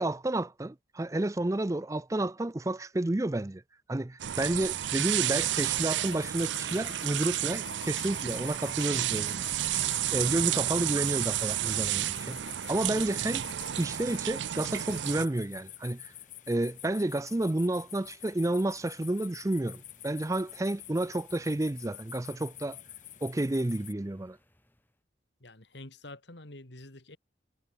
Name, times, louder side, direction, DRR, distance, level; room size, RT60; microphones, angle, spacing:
voice 1, 0.0-3.6 3.9-9.4 10.1-12.4 12.7-13.4 13.8-16.1 16.5-22.8 23.2-24.4, right 1 dB, 15° right, 0.4 m, -30 dB
sound 1, 4.2-15.3, right 12 dB, 70° right, 0.5 m, -31 dB
sound 2, 5.3-23.9, left 13 dB, 40° left, 2.0 m, -48 dB
sound 3, 12.4-25.0, left 1 dB, 10° left, 6.8 m, -66 dB
voice 2, 25.4-27.2, left 2 dB, 65° left, 2.7 m, -47 dB
head